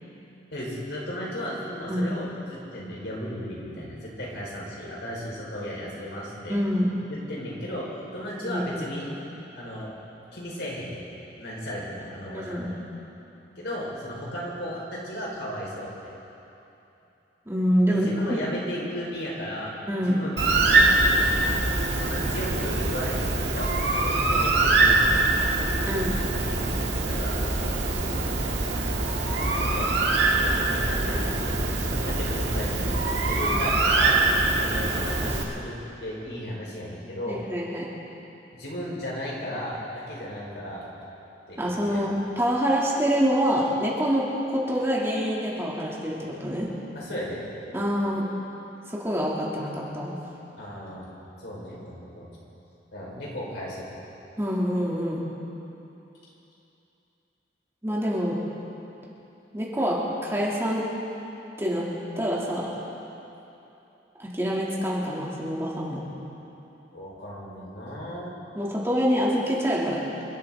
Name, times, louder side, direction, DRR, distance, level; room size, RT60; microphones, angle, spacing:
voice 1, 0.5-6.6 7.1-9.1 9.5-9.9 10.3-11.0 11.4-12.8 13.6-15.9 17.9-19.7 20.0-21.3 21.9-23.7 24.0-25.5 27.2-27.8 28.9-29.1 29.6-29.9 30.4-34.2 34.6-37.4 38.5-40.9 41.5-42.1 46.9-47.4 50.6-51.1 51.4-52.3 52.9-54.0 66.9-68.3, equal, 75° left, -4 dB, 4.5 m, -35 dB
voice 2, 6.5-7.0 8.4-9.0 12.3-12.7 17.5-18.4 19.9-20.2 25.9-26.2 37.3-38.0 41.6-46.7 47.7-48.2 48.9-50.1 54.4-55.2 57.8-58.4 59.5-60.0 60.2-60.9 61.6-61.9 62.2-62.7 64.2-66.0 68.5-70.0, equal, 15° right, -5 dB, 2.6 m, -26 dB
Bird, 20.4-35.4, right 2 dB, 70° right, 1.8 m, -23 dB
28.0 x 13.0 x 3.7 m, 2.9 s
head